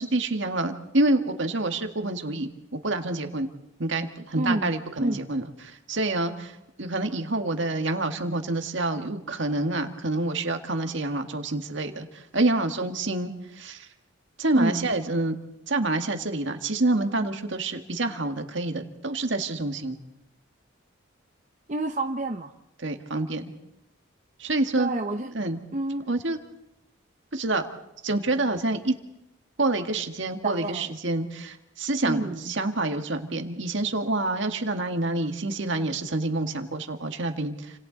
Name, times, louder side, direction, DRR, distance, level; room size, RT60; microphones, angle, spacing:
voice 1, 0.0-3.5 3.8-6.5 6.8-13.9 14.4-15.3 15.7-20.0 22.8-23.5 24.4-24.9 25.3-25.6 26.1-26.4 27.3-27.6 28.0-28.9 29.6-37.7, right 2 dB, 65° right, 6 dB, 1.8 m, -27 dB
voice 2, 4.3-4.7 5.0-5.2 14.5-14.9 21.7-22.5 24.8-25.3 25.7-26.1 30.4-30.9 32.0-32.5, right 2 dB, 35° right, 4 dB, 0.7 m, -28 dB
29.0 x 26.5 x 4.0 m, 0.84 s
head